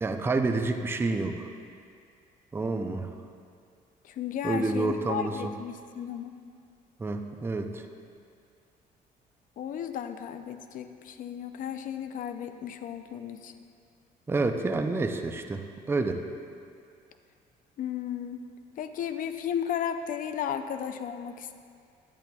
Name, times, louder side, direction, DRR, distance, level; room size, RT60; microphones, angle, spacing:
voice 1, 0.0-1.5 2.5-3.1 4.4-5.5 7.0-7.8 14.3-16.2, right 3 dB, 15° right, 5 dB, 0.4 m, -29 dB
voice 2, 4.0-6.3 9.6-13.5 17.8-18.4 18.8-21.6, left 9 dB, 55° left, 9 dB, 0.5 m, -34 dB
10.5 x 8.6 x 2.3 m, 2.3 s
cardioid pair, 110°, 17 cm